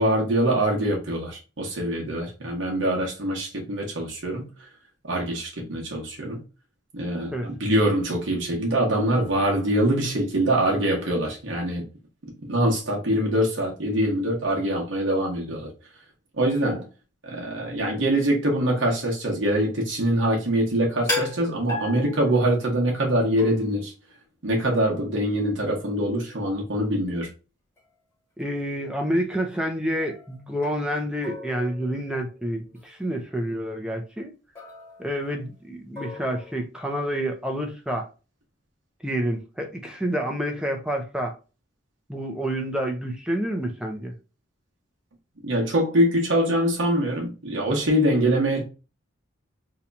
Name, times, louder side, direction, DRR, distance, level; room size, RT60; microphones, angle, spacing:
voice 1, 0.0-4.5 5.1-6.4 6.9-11.8 12.4-15.7 16.4-16.9 17.2-23.9 24.4-27.3 45.4-48.6, right 1 dB, 65° right, 0.9 m, -24 dB
sound 1, 21.1-22.7 23.4-23.8 27.8-27.9 28.4-28.7 30.0-31.0 31.2-32.3 32.8-33.0 34.6-35.5 36.0-36.6, left 2 dB, 15° left, 1.0 m, -35 dB
voice 2, 28.4-34.3 35.0-38.1 39.0-41.4 42.1-44.1, equal, 5° right, 0.5 m, -28 dB
2.8 x 2.3 x 3.8 m
head